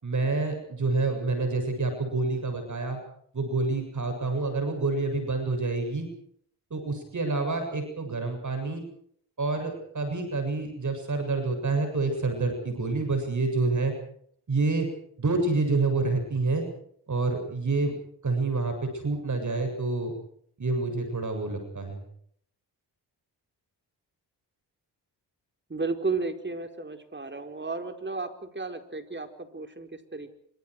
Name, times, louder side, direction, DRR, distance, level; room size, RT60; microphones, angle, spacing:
voice 1, 0.0-3.0 3.3-6.1 6.7-8.8 9.4-13.9 14.5-14.9 15.2-16.6 17.1-17.9 18.2-20.1 20.6-22.0, right 3 dB, 45° right, 6 dB, 7.7 m, -28 dB
voice 2, 25.7-30.3, right 3 dB, 25° right, 6 dB, 4.6 m, -33 dB
27.0 x 26.0 x 4.9 m, 0.65 s
cardioid pair, 75°, 42 cm